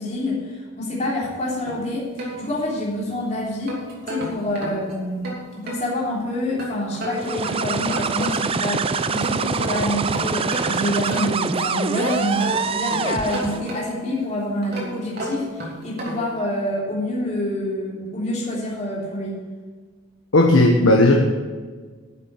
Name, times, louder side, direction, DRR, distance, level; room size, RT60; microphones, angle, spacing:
voice 1, 0.0-3.8 4.1-19.4, left 1 dB, 35° left, -6 dB, 3.4 m, -27 dB
sound 1, 1.7-3.0 3.5-5.9 6.6-8.6 9.0-11.5 12.0-14.1 14.6-16.4, right 1 dB, 50° right, 3.0 m, -33 dB
sound 2, 7.1-13.7, right 5 dB, 30° right, 0.4 m, -25 dB
voice 2, 20.3-21.1, left 2 dB, 90° left, 1 dB, 1.3 m, -14 dB
10.5 x 7.3 x 8.6 m, 1.4 s
head